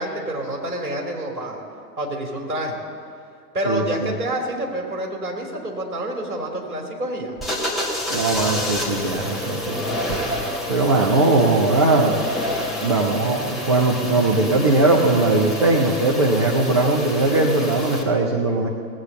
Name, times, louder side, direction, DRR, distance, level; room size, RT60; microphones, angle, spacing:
voice 1, 0.0-1.6 2.0-2.8 3.5-7.3, right 1 dB, 60° right, 1 dB, 3.3 m, -28 dB
voice 2, 3.7-4.1 8.1-10.2 10.7-12.2 12.8-18.7, right 2 dB, 20° right, -2 dB, 0.5 m, -20 dB
sound 1, 7.4-18.0, equal, ahead, 1.2 m, -28 dB
18.5 x 8.0 x 6.8 m, 2.4 s
figure-of-eight pair, 115°, 49 cm